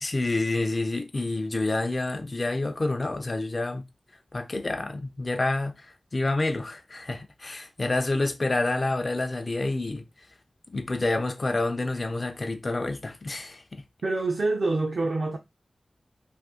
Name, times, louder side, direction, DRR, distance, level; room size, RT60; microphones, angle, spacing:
voice 1, 0.0-3.8 4.3-10.0 10.7-13.8, left 2 dB, 45° left, 0.5 m, -28 dB
voice 2, 14.0-15.4, right 2 dB, 70° right, 0.5 m, -26 dB
2.6 x 2.6 x 3.6 m
cardioid pair, 55°, 0 cm